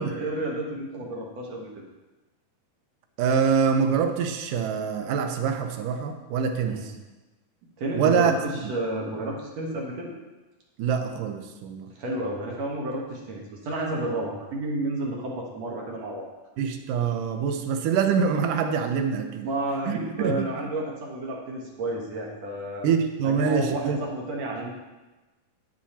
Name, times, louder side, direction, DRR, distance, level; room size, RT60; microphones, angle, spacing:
voice 1, 0.0-1.7 6.6-6.8 7.8-10.1 12.0-16.3 19.4-22.9 23.2-24.7, right 1 dB, 60° right, -1 dB, 2.3 m, -31 dB
voice 2, 3.2-6.9 7.9-8.4 8.6-8.7 10.8-11.9 16.6-19.5 19.9-20.5 22.8-24.0, right 6 dB, 80° right, 7 dB, 2.4 m, -25 dB
9.3 x 9.2 x 4.3 m, 1.1 s
omnidirectional pair, 3.8 m